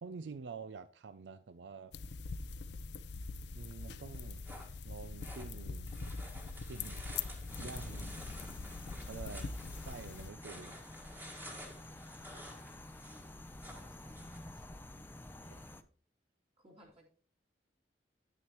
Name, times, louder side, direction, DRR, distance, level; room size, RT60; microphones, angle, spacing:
voice 1, 0.0-1.9 3.5-4.5 4.8-5.9 6.7-8.2 9.0-9.5 9.8-10.8 15.5-15.6, right 4 dB, 80° right, 13 dB, 0.4 m, -48 dB
sound 1, 1.9-10.3, left 4 dB, 70° left, 0.6 m, -43 dB
sound 2, 4.1-14.4, equal, 10° right, 1.7 m, -52 dB
sound 3, 7.5-15.8, left 1 dB, 10° left, 0.5 m, -50 dB
voice 2, 13.1-13.6 13.9-14.6 15.4-15.7 16.6-17.1, equal, 35° right, -2 dB, 2.9 m, -62 dB
9.9 x 9.5 x 3.0 m, 0.43 s
head